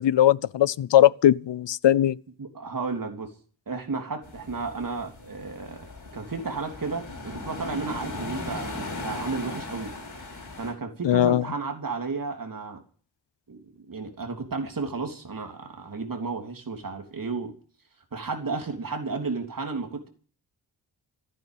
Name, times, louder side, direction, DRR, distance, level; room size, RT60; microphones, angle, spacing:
voice 1, 0.0-2.2 11.0-11.4, left 11 dB, 90° left, 0.6 m, -19 dB
voice 2, 2.4-3.3 3.7-5.9 6.1-9.9 10.6-12.8 13.5-13.6 13.9-17.5 18.1-20.1, right 4 dB, 50° right, 3.3 m, -33 dB
sound 1, 4.2-10.7, left 2 dB, 45° left, 6.6 m, -38 dB
15.0 x 9.0 x 9.4 m
wide cardioid pair, 100°, 42 cm